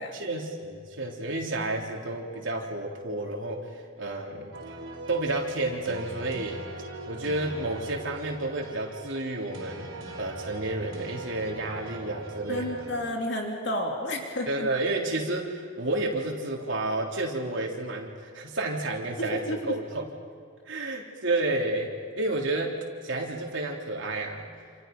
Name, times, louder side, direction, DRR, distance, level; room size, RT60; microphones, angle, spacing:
voice 1, 0.1-4.5 5.1-6.6 7.1-9.9 10.1-12.9 14.5-20.1 20.7-24.5, right 2 dB, 65° right, -1 dB, 3.6 m, -31 dB
sound 1, 4.5-13.1, right 2 dB, 90° right, 3.8 m, -41 dB
voice 2, 12.5-14.7 19.2-19.7, left 1 dB, 60° left, 1 dB, 2.8 m, -31 dB
28.5 x 28.5 x 5.5 m, 2.1 s
head